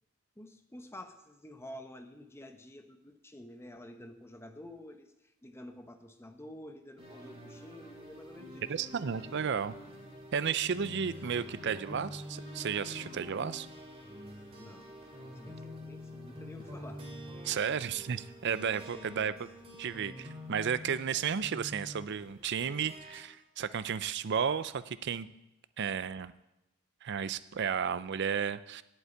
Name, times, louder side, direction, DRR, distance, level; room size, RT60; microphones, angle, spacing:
voice 1, 0.4-8.7 14.6-14.9 15.2-17.0 18.9-19.2, left 1 dB, 10° left, 7 dB, 0.8 m, -49 dB
sound 1, 7.0-23.2, left 1 dB, 30° right, 2.5 m, -47 dB
voice 2, 8.7-9.8 10.3-13.7 17.4-19.3 19.8-25.3 25.8-26.3 27.0-28.8, right 7 dB, 55° right, 15 dB, 0.5 m, -33 dB
8.3 x 8.0 x 8.7 m, 0.91 s
head